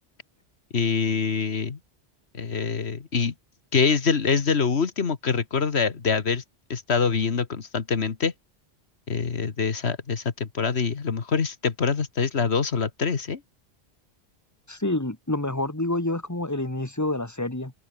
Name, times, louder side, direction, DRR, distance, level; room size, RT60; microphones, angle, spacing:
voice 1, 0.7-1.8 2.3-3.3 3.7-6.4 6.7-8.3 9.1-13.4, left 5 dB, 80° left, 1.8 m, -25 dB
voice 2, 14.7-17.7, left 1 dB, 15° left, 2.4 m, -28 dB
open air
omnidirectional pair, 1.1 m